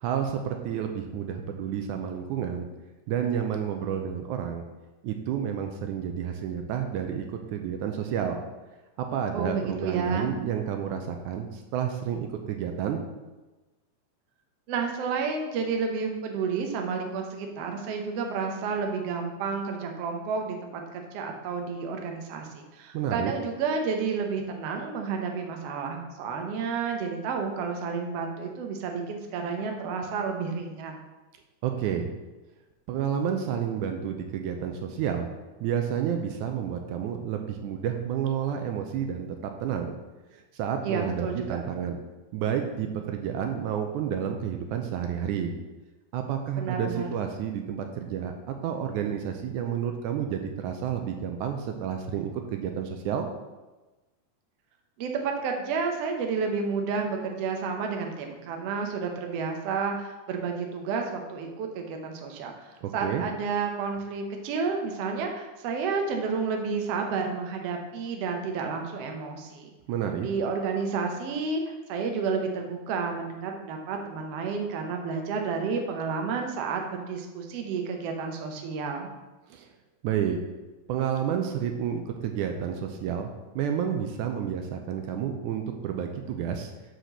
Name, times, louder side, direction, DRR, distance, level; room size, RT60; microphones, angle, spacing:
voice 1, 0.0-2.7 3.1-4.6 5.0-7.3 7.5-8.4 9.0-13.0 22.9-23.3 31.6-32.1 32.9-35.3 35.6-40.0 40.3-42.0 42.3-45.5 46.1-53.3 62.8-63.2 69.9-70.3 79.5-79.7 80.0-80.4 80.9-86.7, right 8 dB, 80° right, 4 dB, 2.1 m, -30 dB
voice 2, 9.3-10.3 14.7-31.0 40.8-41.6 46.6-47.1 55.0-69.7 70.2-79.1, right 5 dB, 65° right, 3 dB, 1.7 m, -31 dB
5.8 x 5.2 x 6.6 m, 1.1 s
omnidirectional pair, 3.5 m